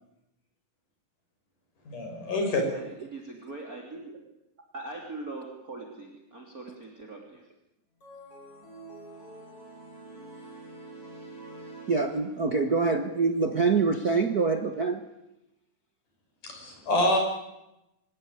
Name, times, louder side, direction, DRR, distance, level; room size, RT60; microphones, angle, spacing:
voice 1, 1.9-2.7 16.4-17.2, left 1 dB, 80° left, 2 dB, 7.4 m, -26 dB
voice 2, 2.6-4.1 4.7-7.5, right 2 dB, 25° right, 0 dB, 3.5 m, -41 dB
sound 1, 8.0-12.7, right 2 dB, 45° left, 7.7 m, -46 dB
voice 3, 11.9-15.0, right 4 dB, 50° right, 7 dB, 1.1 m, -25 dB
26.5 x 16.5 x 9.6 m, 0.91 s
omnidirectional pair, 3.6 m